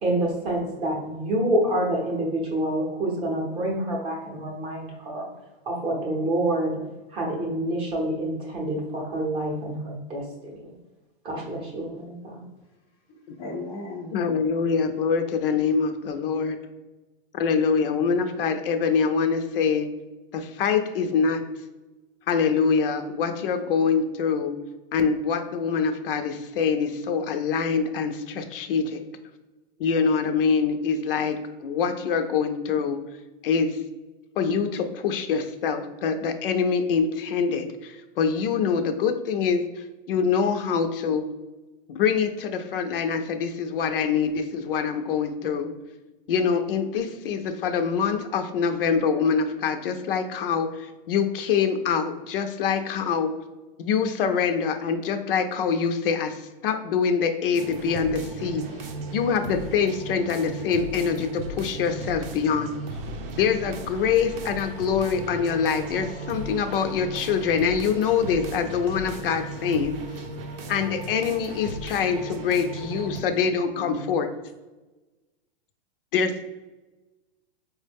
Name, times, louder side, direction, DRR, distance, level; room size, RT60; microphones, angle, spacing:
voice 1, 0.0-5.3 5.7-6.8 7.1-10.7 11.2-12.5, right 1 dB, 20° right, -1 dB, 0.6 m, -27 dB
voice 2, 13.1-14.1 17.8-18.1 73.7-74.2, left 2 dB, 10° left, -7 dB, 0.3 m, -37 dB
voice 3, 14.1-16.6 17.3-19.9 20.3-21.4 22.3-24.5 24.9-29.0 29.8-33.0 33.4-33.8 34.4-41.2 41.9-45.7 46.3-53.3 53.8-58.6 59.1-62.7 63.4-70.0 70.7-74.3 76.1-76.4, left 6 dB, 70° left, 7 dB, 0.5 m, -25 dB
sound 1, 57.5-73.2, right 2 dB, 80° right, 0.6 m, -36 dB
4.5 x 2.1 x 3.3 m, 1.1 s
supercardioid pair, 160°, 29 cm